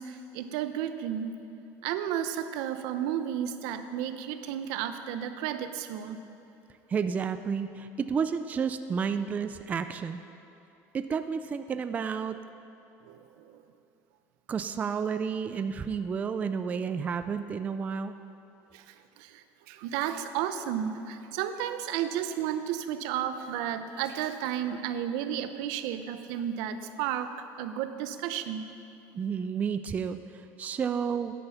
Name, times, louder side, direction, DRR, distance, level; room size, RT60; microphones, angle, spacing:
voice 1, 0.0-1.4 1.8-6.2 13.1-13.6 18.7-27.3 27.6-28.7, right 10 dB, 75° right, 10 dB, 0.7 m, -33 dB
voice 2, 6.9-10.2 10.9-12.4 14.5-18.2 29.1-31.3, right 6 dB, 25° right, 10 dB, 0.4 m, -31 dB
12.0 x 10.5 x 5.7 m, 2.9 s
cardioid pair, 145°, 7 cm